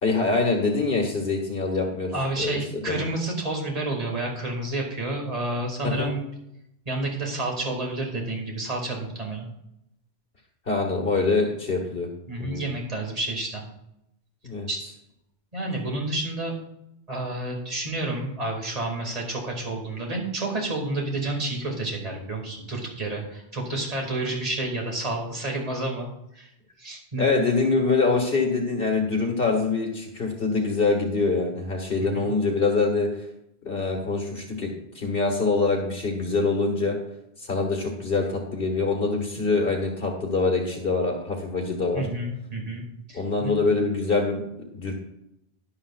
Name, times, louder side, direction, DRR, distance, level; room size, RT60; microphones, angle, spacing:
voice 1, 0.0-2.1 2.4-2.6 2.9-3.0 5.8-6.1 10.7-12.1 12.4-12.6 14.4-14.7 27.2-33.1 33.6-34.7 34.9-37.0 37.4-42.0 43.1-44.9, left 3 dB, 60° left, 1 dB, 1.8 m, -24 dB
voice 2, 2.1-6.3 6.9-9.5 12.3-13.6 14.7-14.8 15.5-16.5 17.1-26.1 26.3-26.5 26.8-27.2 32.0-32.3 41.9-42.8 43.1-43.6, right 2 dB, 35° right, 0 dB, 2.3 m, -30 dB
12.5 x 11.0 x 2.4 m, 0.81 s
omnidirectional pair, 1.1 m